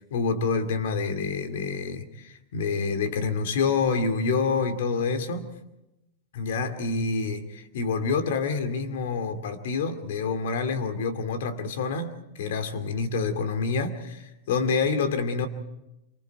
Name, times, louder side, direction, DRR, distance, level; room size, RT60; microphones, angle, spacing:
voice 1, 0.1-5.5 6.3-15.5, left 4 dB, 75° left, 9 dB, 2.3 m, -27 dB
27.0 x 24.5 x 4.6 m, 0.90 s
supercardioid pair, 170°, 0 cm